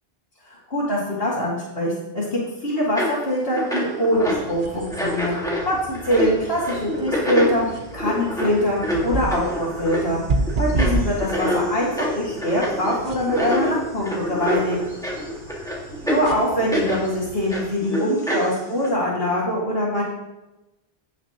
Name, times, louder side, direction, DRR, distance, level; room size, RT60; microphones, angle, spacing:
voice 1, 0.5-5.4 5.7-5.8 6.0-10.2 10.6-14.8 16.0-20.0, equal, 75° left, -9 dB, 2.3 m, -23 dB
sound 1, 3.0-3.2 3.5-4.5 4.8-17.1 17.5-18.9, equal, 5° left, 1.7 m, -27 dB
sound 2, 4.1-17.8, right 3 dB, 55° right, 0.9 m, -32 dB
15.5 x 5.8 x 2.9 m, 1.0 s
omnidirectional pair, 1.0 m